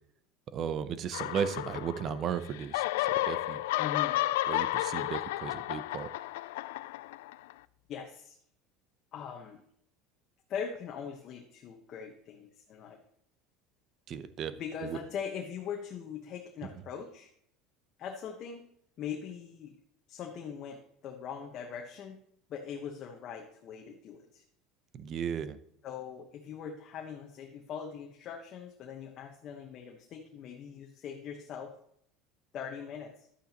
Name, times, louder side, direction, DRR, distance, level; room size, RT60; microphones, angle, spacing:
voice 1, 0.5-3.6 4.5-6.1 14.1-14.5 14.8-15.0 24.9-25.6, right 7 dB, 40° right, 13 dB, 0.7 m, -35 dB
sound 1, 1.1-2.3 2.5-7.5, left 16 dB, 90° left, 0.3 m, -32 dB
voice 2, 3.8-4.2 7.9-8.4 9.1-9.6 10.5-13.0 14.6-17.3 18.0-18.6 19.0-19.8 20.1-22.2 22.5-24.4 25.8-31.7 32.5-33.3, left 7 dB, 45° left, 2 dB, 1.1 m, -41 dB
11.5 x 8.7 x 3.0 m, 0.69 s
supercardioid pair, 125°, 0 cm